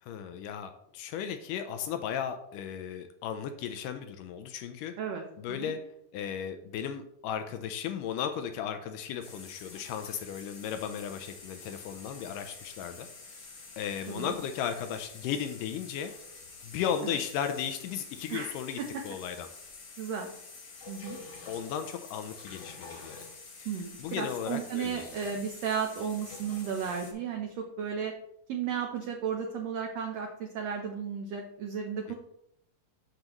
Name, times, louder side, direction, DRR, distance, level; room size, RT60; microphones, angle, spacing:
voice 1, 0.0-5.0 5.4-13.1 13.8-16.1 16.6-18.8 19.0-19.5 21.5-23.2 24.0-25.1 32.1-32.2, left 8 dB, 80° left, 7 dB, 2.1 m, -35 dB
voice 2, 5.0-5.7 14.1-14.3 17.0-17.1 18.3-18.8 20.0-20.3 20.9-21.2 23.6-28.1 28.5-32.1, right 7 dB, 75° right, 2 dB, 1.5 m, -34 dB
sound 1, 9.2-27.1, left 4 dB, 60° left, 1.0 m, -48 dB
7.6 x 6.5 x 3.0 m, 0.75 s
omnidirectional pair, 3.8 m